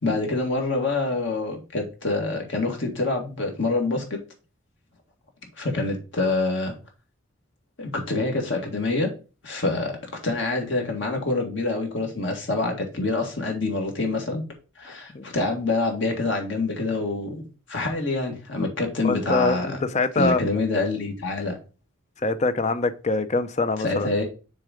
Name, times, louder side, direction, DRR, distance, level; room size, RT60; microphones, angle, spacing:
voice 1, 0.0-4.2 5.6-6.7 7.8-9.1 9.4-10.0 10.2-14.4 14.8-17.4 17.7-19.9 20.2-21.6 23.8-24.3, left 2 dB, 60° left, 1.9 m, -26 dB
voice 2, 19.0-20.4 22.2-24.1, left 3 dB, 35° left, 0.5 m, -24 dB
6.6 x 3.8 x 5.1 m
head